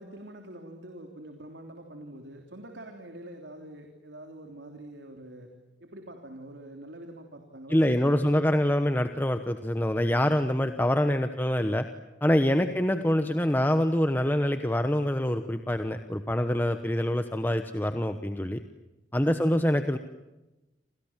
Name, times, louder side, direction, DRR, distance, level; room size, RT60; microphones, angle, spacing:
voice 1, 0.0-5.5 5.8-8.4 12.5-12.8, right 1 dB, 80° right, 4 dB, 3.4 m, -45 dB
voice 2, 7.7-11.8 12.2-18.6 19.1-20.0, left 1 dB, 10° left, 8 dB, 1.1 m, -25 dB
29.0 x 27.5 x 7.4 m, 1.0 s
head